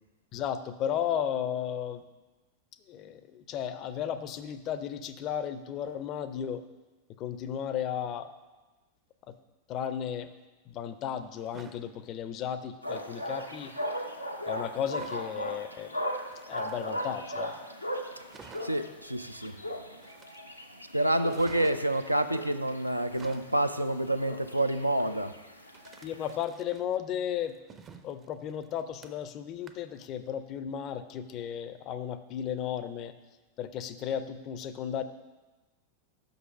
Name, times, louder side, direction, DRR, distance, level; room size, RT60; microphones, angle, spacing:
voice 1, 0.3-2.0 2.9-6.6 7.2-8.3 9.3-9.4 9.7-10.3 10.7-13.7 14.5-15.9 16.4-17.6 26.0-27.5 28.0-33.1 33.6-35.0, left 9 dB, 35° left, 12 dB, 0.4 m, -34 dB
sound 1, 11.4-11.8 13.4-13.9 14.9-15.3 16.2-17.2 17.6-17.7 17.9-18.0 18.3-18.9 20.0-20.6 21.3-22.1 22.9-23.6 25.7-27.0 27.4-29.4 29.7-30.0 30.4-30.5, right 5 dB, 25° right, 0.5 m, -52 dB
sound 2, 12.8-26.4, equal, 90° left, 0.6 m, -38 dB
voice 2, 18.6-19.6 20.9-25.3, right 1 dB, 85° right, 10 dB, 0.4 m, -28 dB
6.2 x 5.3 x 6.0 m, 1.2 s
figure-of-eight pair, 90°, 0 cm